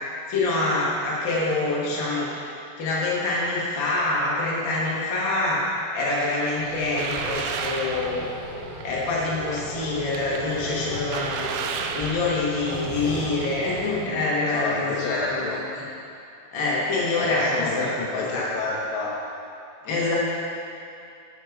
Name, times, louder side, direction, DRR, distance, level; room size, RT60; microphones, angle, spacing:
voice 1, 0.3-2.3 2.8-5.6 5.9-8.3 8.8-11.5 11.9-15.8 16.5-18.5 19.8-20.2, left 2 dB, 45° left, -6 dB, 1.6 m, -25 dB
sound 1, 6.2-14.1, right 5 dB, 85° right, 2.4 m, -35 dB
sound 2, 6.5-14.0, left 1 dB, 20° left, 1.4 m, -36 dB
voice 2, 14.5-15.6 17.2-19.2, left 3 dB, 75° left, -3 dB, 2.3 m, -30 dB
9.5 x 5.4 x 4.7 m, 2.6 s
omnidirectional pair, 4.2 m